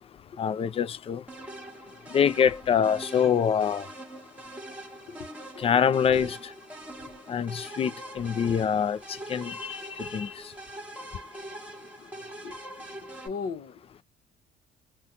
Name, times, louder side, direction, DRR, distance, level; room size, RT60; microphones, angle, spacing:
voice 1, 0.4-1.2 2.1-3.9 5.6-6.5 7.3-10.5, left 7 dB, 30° left, 0.4 m, -25 dB
sound 1, 1.3-13.3, right 1 dB, 5° right, 1.2 m, -43 dB
voice 2, 5.1-5.7 6.2-6.3 11.3-11.4 12.4-12.6 13.2-13.8, left 5 dB, 55° left, 0.7 m, -38 dB
2.8 x 2.2 x 3.6 m
cardioid pair, 115°, 18 cm